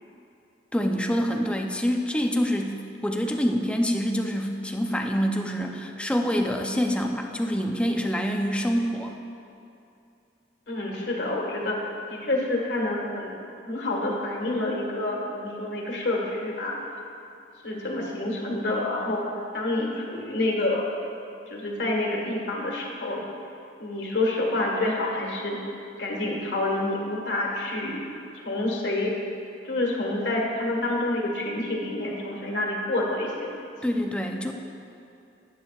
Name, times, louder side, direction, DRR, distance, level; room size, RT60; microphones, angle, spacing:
voice 1, 0.7-9.1 33.8-34.5, equal, 5° left, 2 dB, 0.5 m, -26 dB
voice 2, 10.7-11.8 12.1-13.3 13.6-16.8 17.6-19.2 19.5-20.9 21.5-23.2 23.8-25.6 26.0-28.0 28.3-29.1 29.6-33.5, left 2 dB, 80° left, -2 dB, 1.6 m, -28 dB
11.0 x 9.7 x 2.4 m, 2.6 s
head